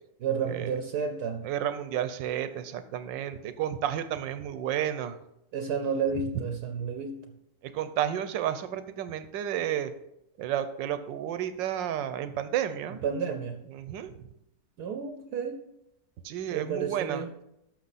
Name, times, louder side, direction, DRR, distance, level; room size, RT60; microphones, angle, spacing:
voice 1, 0.2-1.5 5.5-7.2 13.0-13.6 14.8-15.6 16.5-17.3, right 6 dB, 65° right, 7 dB, 1.2 m, -31 dB
voice 2, 1.4-5.2 7.6-9.9 10.4-13.0 13.7-14.1 16.2-17.2, right 10 dB, 80° right, 11 dB, 1.4 m, -31 dB
11.5 x 6.5 x 4.1 m, 0.81 s
omnidirectional pair, 2.0 m